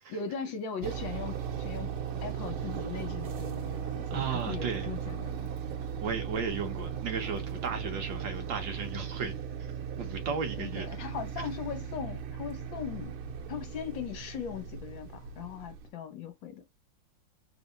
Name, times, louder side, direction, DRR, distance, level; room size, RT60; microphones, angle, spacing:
voice 1, 0.1-5.4 10.6-13.1 13.5-16.7, left 7 dB, 65° left, 1.5 m, -39 dB
sound 1, 0.8-15.9, right 8 dB, 90° right, 1.6 m, -37 dB
voice 2, 4.1-4.9 6.0-9.3 10.0-11.0, right 5 dB, 65° right, 1.5 m, -35 dB
3.7 x 3.4 x 2.6 m
omnidirectional pair, 2.3 m